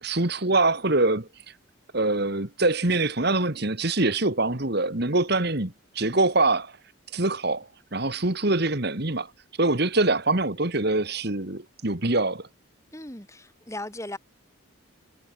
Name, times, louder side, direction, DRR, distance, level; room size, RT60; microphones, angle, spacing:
voice 1, 0.0-1.3 1.9-6.7 7.1-9.3 9.6-12.5, right 2 dB, 50° right, 2.1 m, -24 dB
voice 2, 12.9-14.2, left 1 dB, 15° left, 5.3 m, -37 dB
head